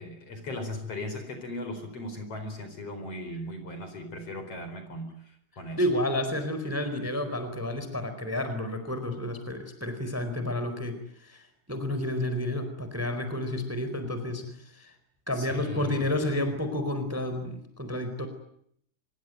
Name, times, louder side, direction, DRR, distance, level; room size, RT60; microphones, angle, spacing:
voice 1, 0.0-5.8 15.3-16.1, left 1 dB, 45° left, 8 dB, 5.3 m, -38 dB
voice 2, 5.8-14.9 15.3-18.3, left 1 dB, 5° right, 8 dB, 3.9 m, -30 dB
26.0 x 22.5 x 9.3 m, 0.69 s
omnidirectional pair, 3.9 m